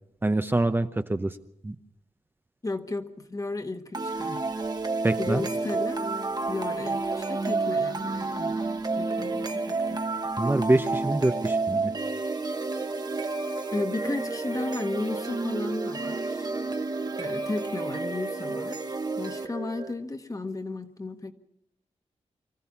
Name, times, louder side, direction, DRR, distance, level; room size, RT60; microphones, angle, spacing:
voice 1, 0.2-1.4 1.6-1.8 5.0-5.4 10.4-11.9, right 2 dB, 20° right, 8 dB, 0.8 m, -25 dB
voice 2, 2.6-4.4 5.2-6.1 6.5-8.6 8.9-10.0 13.7-16.5 17.2-21.3, left 2 dB, 30° left, 7 dB, 1.5 m, -34 dB
sound 1, 3.9-19.9, right 3 dB, 35° right, 1.3 m, -30 dB
24.5 x 14.5 x 7.2 m, 0.78 s
cardioid pair, 75°, 12 cm